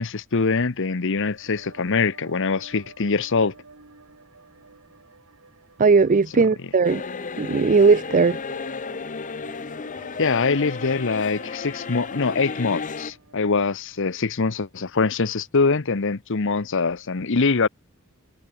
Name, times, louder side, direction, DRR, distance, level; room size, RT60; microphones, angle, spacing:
voice 1, 0.0-3.5 10.2-17.7, left 4 dB, 60° left, 0.9 m, -23 dB
sound 1, 0.9-14.2, right 3 dB, 80° right, 2.4 m, -50 dB
voice 2, 5.8-7.0 7.4-8.4, right 4 dB, 40° right, 0.5 m, -18 dB
sound 2, 6.8-13.1, left 4 dB, 35° left, 0.7 m, -33 dB
head